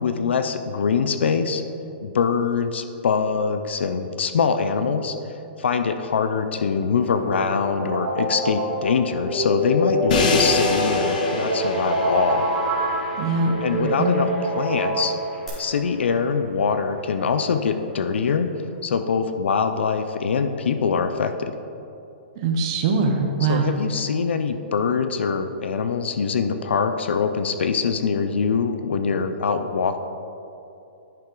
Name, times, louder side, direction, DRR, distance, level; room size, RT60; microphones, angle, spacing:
voice 1, 0.0-1.6 2.0-5.1 5.6-12.4 13.6-14.3 14.6-15.1 15.6-21.5 23.5-30.0, left 5 dB, 75° left, 9 dB, 0.5 m, -23 dB
sound 1, 7.0-15.5, right 1 dB, 5° left, 1.6 m, -25 dB
Crash cymbal, 10.1-16.1, left 3 dB, 45° left, 0.9 m, -29 dB
voice 2, 13.2-14.3 22.4-23.7, right 4 dB, 25° right, 3 dB, 0.6 m, -23 dB
10.5 x 5.7 x 3.8 m, 2.8 s
hypercardioid pair, 180°, 6 cm